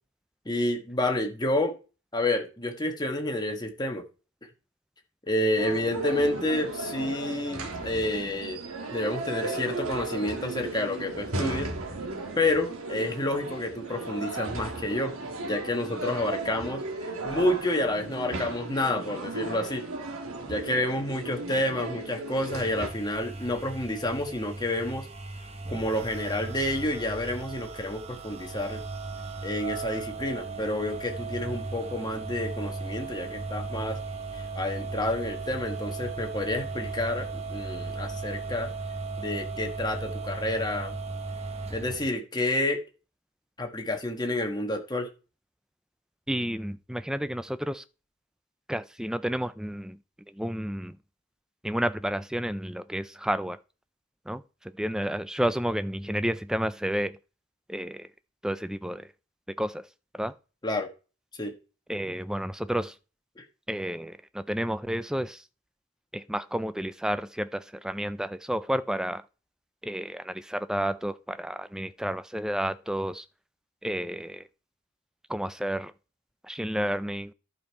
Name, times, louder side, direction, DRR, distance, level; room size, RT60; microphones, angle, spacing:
voice 1, 0.4-1.7 2.1-4.0 5.3-8.6 8.9-11.7 12.3-15.1 15.4-19.8 20.5-25.1 25.7-28.8 29.4-34.0 34.3-38.7 39.2-41.0 41.7-42.8 43.6-45.1 60.6-60.9 61.4-61.5 63.4-63.5, left 1 dB, 20° left, 1.3 m, -29 dB
sound 1, 5.6-22.9, right 2 dB, 70° right, 1.6 m, -35 dB
sound 2, 22.5-42.1, right 3 dB, 30° right, 0.8 m, -36 dB
voice 2, 46.3-47.8 48.7-50.0 50.3-51.0 51.6-53.6 54.3-57.2 57.7-58.1 58.4-59.1 59.6-59.9 60.1-60.3 61.9-63.0 63.7-65.4 66.1-69.2 69.8-73.3 73.8-74.4 75.3-75.9 76.4-77.3, equal, 5° right, 0.3 m, -31 dB
11.5 x 5.4 x 4.5 m
head